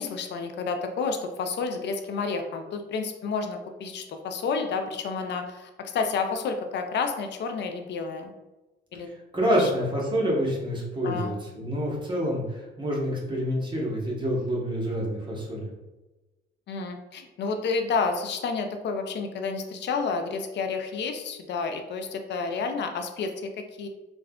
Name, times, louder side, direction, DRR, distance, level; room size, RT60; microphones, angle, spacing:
voice 1, 0.0-8.3 8.9-9.1 9.6-9.7 11.0-11.3 16.7-23.9, left 4 dB, 60° left, 5 dB, 0.5 m, -30 dB
voice 2, 8.9-15.7, equal, 25° right, -4 dB, 1.1 m, -27 dB
3.5 x 2.3 x 2.3 m, 1.1 s
cardioid pair, 90°, 20 cm